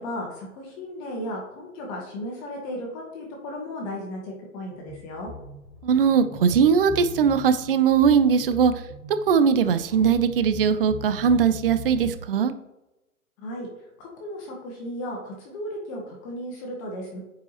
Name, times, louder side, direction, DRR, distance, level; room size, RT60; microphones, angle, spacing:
voice 1, 0.0-5.3 13.4-13.7 14.0-17.2, left 1 dB, 25° left, -1 dB, 1.2 m, -35 dB
sound 1, 4.7-12.1, left 1 dB, ahead, 2.3 m, -41 dB
voice 2, 5.8-8.7 9.3-12.5, right 7 dB, 40° right, 11 dB, 0.5 m, -20 dB
9.3 x 4.7 x 2.9 m, 0.97 s
hypercardioid pair, 140°, 43 cm